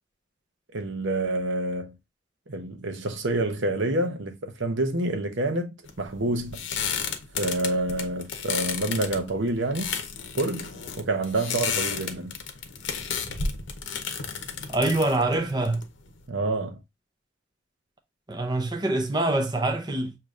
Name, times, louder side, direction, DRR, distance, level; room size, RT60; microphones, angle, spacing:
voice 1, 0.7-1.9 2.5-6.6 7.4-9.9 10.4-12.3 16.3-16.8, right 2 dB, 75° right, 0.9 m, -28 dB
sound 1, 5.9-16.2, left 6 dB, 70° left, 0.8 m, -33 dB
voice 2, 14.7-15.8 18.3-20.2, right 2 dB, 20° right, 0.6 m, -25 dB
6.6 x 2.9 x 2.4 m
head